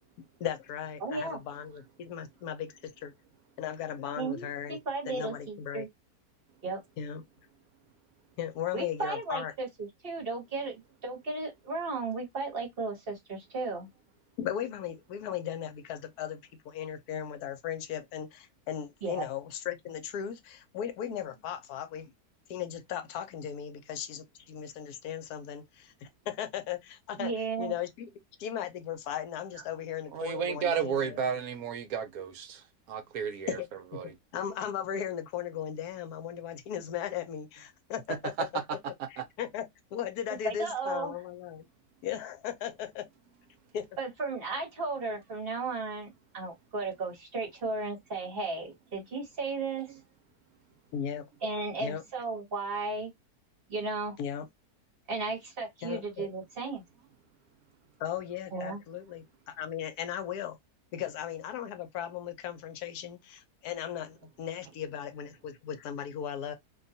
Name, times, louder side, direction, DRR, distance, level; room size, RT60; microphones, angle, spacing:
voice 1, 0.4-3.1 3.6-4.8 5.1-5.9 7.0-7.2 8.4-9.5 14.4-22.1 22.5-27.3 27.6-28.1 28.4-31.2 33.5-34.0 34.3-38.8 39.1-39.7 39.9-41.7 42.0-43.1 43.7-43.9 50.9-51.3 51.8-52.0 54.2-54.5 55.8-56.3 58.0-60.6 60.9-66.6, left 9 dB, 80° left, 1.1 m, -37 dB
voice 2, 1.0-1.4 4.2-5.9 6.6-6.8 8.7-13.9 19.0-19.2 27.2-27.7 40.4-41.1 44.0-49.9 51.4-53.1 53.7-54.2 55.1-56.8 58.5-58.8, right 3 dB, 45° right, 1.0 m, -35 dB
voice 3, 30.1-33.6 33.9-34.1 39.2-39.3, right 7 dB, 75° right, 1.0 m, -33 dB
2.7 x 2.3 x 2.6 m
omnidirectional pair, 1.7 m